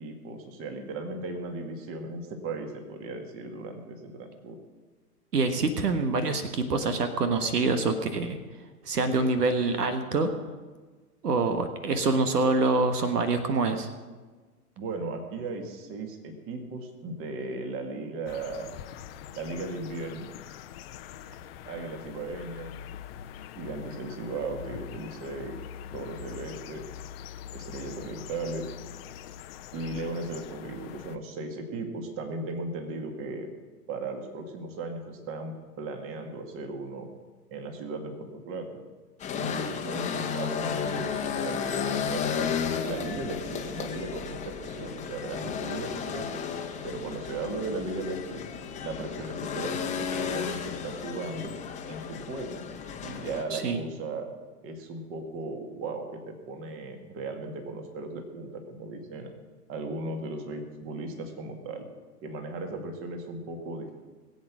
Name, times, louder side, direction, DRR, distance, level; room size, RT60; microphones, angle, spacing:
voice 1, 0.0-4.6 14.8-18.7 19.3-20.3 21.7-22.8 23.5-25.6 25.9-26.9 27.5-28.8 29.7-33.5 33.9-37.1 37.5-38.8 39.3-48.4 48.8-51.5 51.9-52.6 53.0-54.3 54.6-59.3 59.7-61.9 62.2-63.9, right 3 dB, 25° right, 5 dB, 2.1 m, -36 dB
voice 2, 5.3-8.4 8.8-10.3 11.2-13.9 53.5-53.8, right 3 dB, 75° right, 8 dB, 1.6 m, -25 dB
sound 1, 18.3-31.2, left 9 dB, 40° left, 0.9 m, -43 dB
sound 2, 39.2-53.4, left 7 dB, 15° left, 1.2 m, -33 dB
20.5 x 8.2 x 6.1 m, 1.3 s
hypercardioid pair, 120°, 47 cm